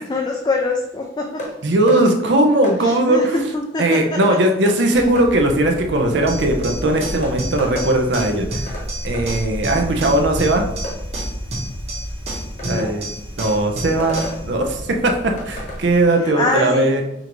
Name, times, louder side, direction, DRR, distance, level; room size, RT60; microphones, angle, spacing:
voice 1, 0.0-1.4 2.8-4.4 4.9-5.0 12.6-13.1 16.2-17.0, left 2 dB, 25° left, 1 dB, 0.3 m, -24 dB
sound 1, 1.4-1.5 1.9-2.0 2.6-2.8 4.2-4.4 4.7-4.8 5.2-5.3 6.7-6.8 7.2-7.9 8.7-8.9 9.1-9.3 10.8-11.0 12.6-12.7 14.0-14.4 15.4-15.8, equal, 45° left, 1.0 m, -31 dB
voice 2, 1.6-3.3 3.8-8.7 9.0-10.7 12.7-13.1 13.4-17.0, right 1 dB, 75° right, 3 dB, 0.6 m, -18 dB
sound 2, 4.9-15.9, equal, 85° left, 1.2 m, -32 dB
sound 3, 6.3-14.4, right 1 dB, 35° right, 1.1 m, -31 dB
5.0 x 2.5 x 3.0 m, 0.85 s
head